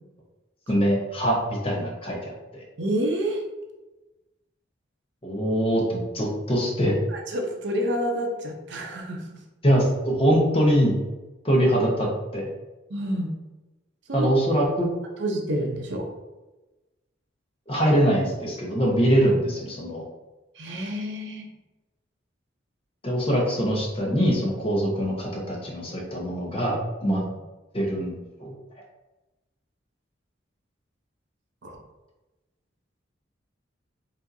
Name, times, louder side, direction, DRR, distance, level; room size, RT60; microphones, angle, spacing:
voice 1, 0.7-2.3 5.2-6.9 9.6-11.0 11.4-12.5 14.1-14.9 17.7-20.0 23.0-27.2 27.7-28.1 28.4-28.5, equal, 30° left, -2 dB, 0.9 m, -23 dB
voice 2, 2.8-3.4 7.1-9.4 12.9-13.3 14.1-14.3 15.2-16.1 20.5-21.5 27.0-27.4 31.6-31.8, equal, 65° right, 1 dB, 0.7 m, -28 dB
5.0 x 2.7 x 2.6 m, 1.1 s
head